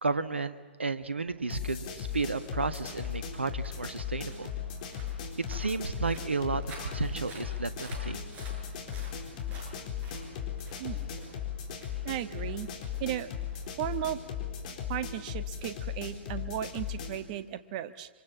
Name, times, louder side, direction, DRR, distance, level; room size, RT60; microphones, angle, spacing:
voice 1, 0.0-4.5 5.4-8.2, right 4 dB, 80° right, 12 dB, 1.4 m, -33 dB
sound 1, 1.4-14.8, right 2 dB, 25° right, 6.6 m, -52 dB
sound 2, 1.5-17.2, left 8 dB, 45° left, 4.0 m, -37 dB
voice 2, 12.0-12.7 13.0-13.3 13.8-14.2 14.9-18.1, right 12 dB, 40° right, 12 dB, 1.4 m, -35 dB
26.0 x 26.0 x 7.4 m, 1.4 s
figure-of-eight pair, 110°, 6 cm